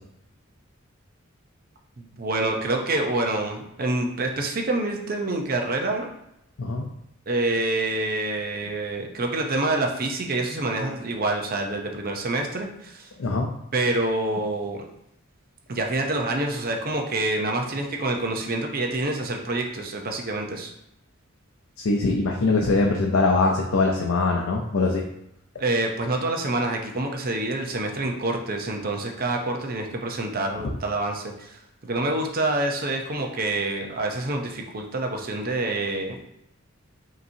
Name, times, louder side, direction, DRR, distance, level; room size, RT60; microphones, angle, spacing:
voice 1, 2.0-6.1 7.3-13.1 13.7-14.8 15.7-20.7 25.6-36.2, right 2 dB, 45° right, 3 dB, 0.7 m, -27 dB
voice 2, 21.8-25.0, left 3 dB, 80° left, 0 dB, 0.5 m, -22 dB
5.3 x 3.0 x 2.7 m, 0.80 s
head